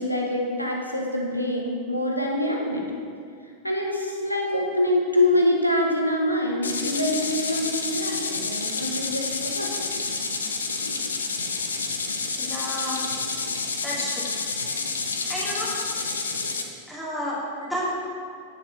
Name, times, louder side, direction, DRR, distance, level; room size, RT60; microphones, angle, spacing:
voice 1, 0.0-2.9 3.6-9.7, left 1 dB, 90° left, 0 dB, 1.4 m, -25 dB
sound 1, 6.6-16.6, left 4 dB, 70° left, 0.8 m, -29 dB
voice 2, 12.4-13.0 13.8-14.2 15.3-15.7 16.9-17.9, equal, ahead, -8 dB, 2.9 m, -31 dB
9.8 x 7.2 x 5.7 m, 2.3 s
figure-of-eight pair, 90°, 0 cm